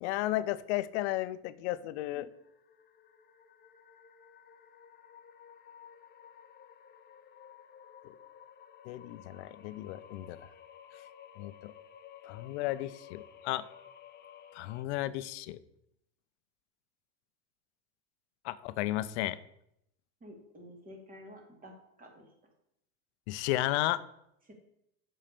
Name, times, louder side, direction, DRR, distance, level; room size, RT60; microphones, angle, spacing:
voice 1, 0.0-2.3 8.8-10.5 11.4-11.7 12.3-13.6 14.5-15.6 18.4-19.4 23.3-24.0, left 15 dB, 70° left, 14 dB, 0.7 m, -33 dB
sound 1, 2.1-14.8, left 8 dB, 30° left, 0.8 m, -54 dB
voice 2, 20.2-21.7 22.0-22.3 24.4-24.5, equal, 25° right, 2 dB, 2.7 m, -50 dB
7.3 x 5.7 x 6.8 m, 0.78 s
supercardioid pair, 115°, 35 cm